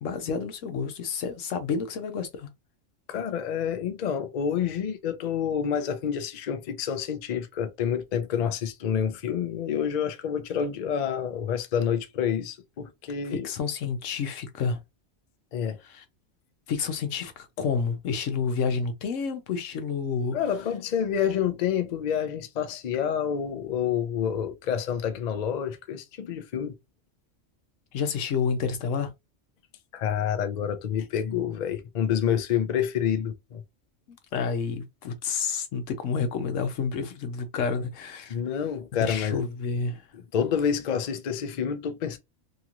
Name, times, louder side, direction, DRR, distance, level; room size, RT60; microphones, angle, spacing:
voice 1, 0.0-2.5 13.4-14.8 15.8-16.0 16.7-20.4 27.9-29.1 34.1-38.4 39.0-40.0, left 5 dB, 90° left, 1.1 m, -29 dB
voice 2, 3.1-13.5 15.5-15.8 20.3-26.8 29.9-33.6 38.3-39.4 40.3-42.2, left 8 dB, 55° left, 0.5 m, -28 dB
2.9 x 2.9 x 2.4 m
omnidirectional pair, 1.3 m